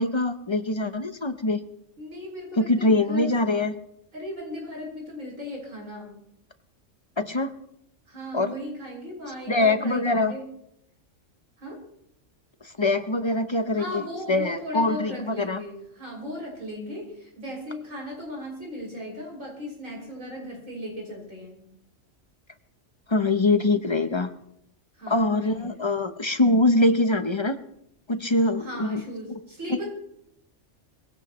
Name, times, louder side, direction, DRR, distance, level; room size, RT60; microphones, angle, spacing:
voice 1, 0.0-1.6 2.6-3.8 7.2-7.5 8.3-8.5 9.5-10.4 12.6-14.0 14.3-15.6 23.1-24.3 25.1-27.6 28.1-29.0, left 2 dB, 30° left, 9 dB, 0.6 m, -23 dB
voice 2, 2.0-3.3 4.1-6.1 8.1-10.5 11.6-11.8 13.7-21.6 24.9-26.1 28.6-29.9, equal, 85° right, -2 dB, 6.6 m, -37 dB
21.0 x 17.0 x 3.1 m, 0.75 s
omnidirectional pair, 1.3 m